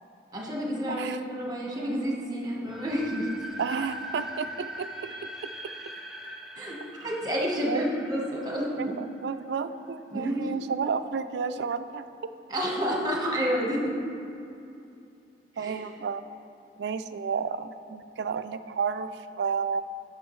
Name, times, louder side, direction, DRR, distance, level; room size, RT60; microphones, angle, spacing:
voice 1, 0.3-3.3 6.5-8.9 10.1-10.7 12.5-13.9 15.6-15.8, equal, 20° right, -2 dB, 1.2 m, -30 dB
voice 2, 0.9-1.2 3.6-5.1 5.4-5.7 7.7-7.8 8.8-12.0 15.6-16.2 16.8-19.8, right 6 dB, 75° right, 11 dB, 0.3 m, -31 dB
sound 1, 2.6-9.5, right 1 dB, ahead, 0.4 m, -41 dB
13.0 x 6.1 x 3.1 m, 2.7 s
head